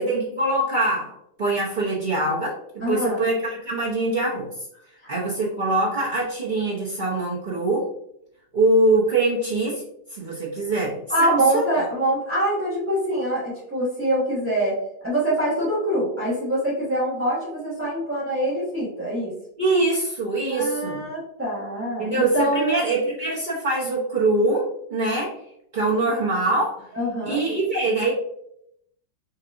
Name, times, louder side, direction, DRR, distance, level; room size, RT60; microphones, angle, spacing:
voice 1, 0.0-4.5 5.1-7.9 8.5-9.8 10.1-11.6 19.6-21.0 22.0-25.4 25.7-26.9 27.3-28.1, right 2 dB, 75° right, -6 dB, 0.4 m, -23 dB
voice 2, 2.8-3.3 11.1-14.8 15.0-19.3 20.5-22.8 26.9-27.4, right 1 dB, 10° right, -11 dB, 0.8 m, -24 dB
4.4 x 2.8 x 2.5 m, 0.75 s
omnidirectional pair, 2.0 m